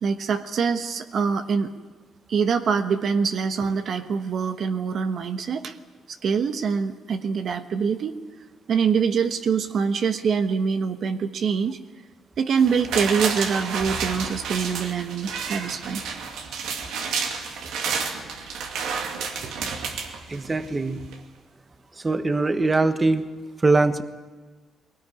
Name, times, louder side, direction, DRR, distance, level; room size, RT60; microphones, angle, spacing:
voice 1, 0.0-1.7 2.3-5.7 6.1-8.2 8.7-11.8 12.4-16.0 19.4-19.6, right 6 dB, 60° right, 7 dB, 1.2 m, -24 dB
sound 1, 12.6-20.7 21.1-21.2, right 5 dB, 85° right, 2.4 m, -30 dB
voice 2, 20.3-21.0 22.0-23.3 23.6-24.0, right 3 dB, 25° right, 9 dB, 1.3 m, -21 dB
20.5 x 18.0 x 9.9 m, 1.3 s
cardioid pair, 90°, 0 cm